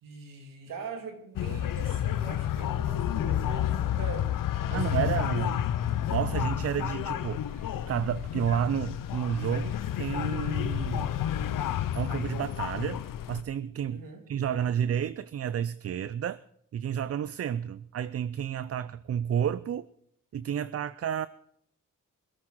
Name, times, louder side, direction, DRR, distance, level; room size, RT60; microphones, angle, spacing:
voice 1, 0.0-4.3 4.7-5.2 13.9-14.2, right 4 dB, 90° right, 2.6 m, -42 dB
sound 1, 1.4-13.4, left 11 dB, 80° left, 0.8 m, -30 dB
voice 2, 4.7-5.6 6.1-11.1 11.9-13.0 13.3-16.4 16.7-19.9 20.3-21.3, right 9 dB, 50° right, 0.5 m, -31 dB
21.5 x 8.8 x 6.2 m
cardioid pair, 65°, 32 cm